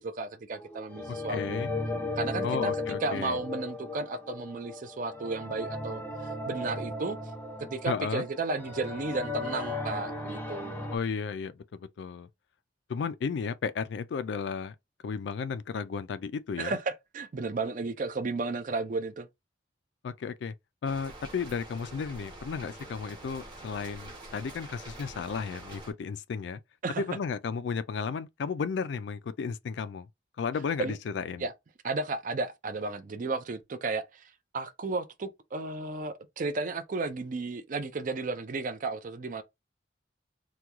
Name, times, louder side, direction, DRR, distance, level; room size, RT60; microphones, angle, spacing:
voice 1, 0.0-1.7 2.2-7.2 7.6-10.9 16.6-19.3 26.8-27.0 30.8-30.9 31.4-31.5 31.8-34.2 34.5-39.4, right 3 dB, 45° right, 0.4 m, -33 dB
sound 1, 0.5-11.0, left 2 dB, 10° left, 0.5 m, -36 dB
voice 2, 1.1-1.7 2.4-3.4 7.9-8.3 10.9-12.3 12.9-14.8 15.0-16.8 20.0-20.5 20.8-26.6 27.0-30.1 30.4-31.5, left 5 dB, 65° left, 0.3 m, -34 dB
sound 2, 20.8-25.9, right 2 dB, 25° right, 1.0 m, -46 dB
3.0 x 2.2 x 3.4 m
head